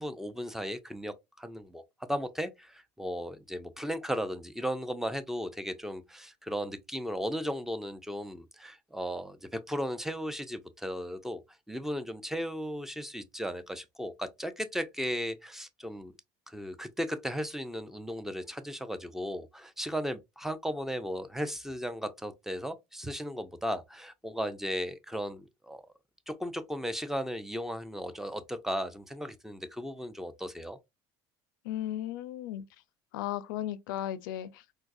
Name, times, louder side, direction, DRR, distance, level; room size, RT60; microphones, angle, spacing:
voice 1, 0.0-11.4 11.7-16.1 16.5-25.8 26.3-30.8, equal, 5° right, 0.5 m, -36 dB
voice 2, 31.6-32.6 33.1-34.6, left 12 dB, 90° left, 0.4 m, -35 dB
3.9 x 2.3 x 2.5 m
supercardioid pair, 95°, 11 cm